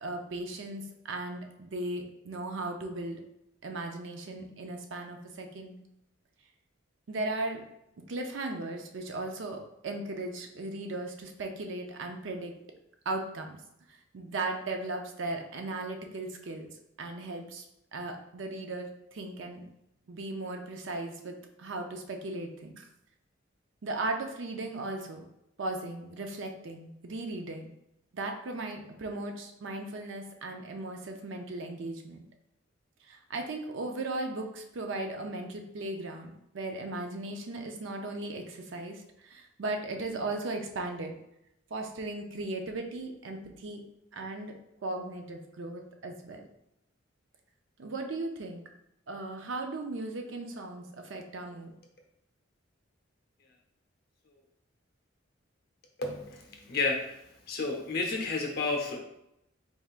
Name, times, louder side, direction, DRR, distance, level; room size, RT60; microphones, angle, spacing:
voice 1, 0.0-3.2 3.6-5.8 7.1-7.6 8.1-12.5 13.1-13.6 13.9-16.7 17.0-17.6 17.9-19.7 20.1-22.9 23.8-25.2 25.6-27.7 28.1-32.2 33.0-41.2 41.7-43.8 44.1-44.6 44.8-46.4 47.8-48.6 49.1-51.7, right 2 dB, 65° right, 4 dB, 0.5 m, -37 dB
voice 2, 56.0-56.4 56.7-57.0 57.5-59.0, left 3 dB, 50° left, 2 dB, 0.7 m, -30 dB
4.1 x 3.5 x 2.4 m, 0.83 s
head